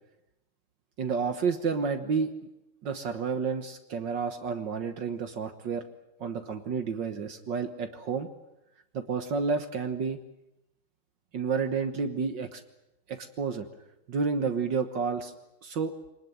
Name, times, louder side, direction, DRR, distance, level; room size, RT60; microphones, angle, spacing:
voice 1, 1.0-2.3 2.8-5.8 6.2-8.3 8.9-10.2 11.3-12.6 13.1-13.7 14.1-15.3 15.6-16.0, right 5 dB, 65° right, 7 dB, 2.0 m, -30 dB
25.0 x 19.5 x 9.1 m, 0.89 s
omnidirectional pair, 2.1 m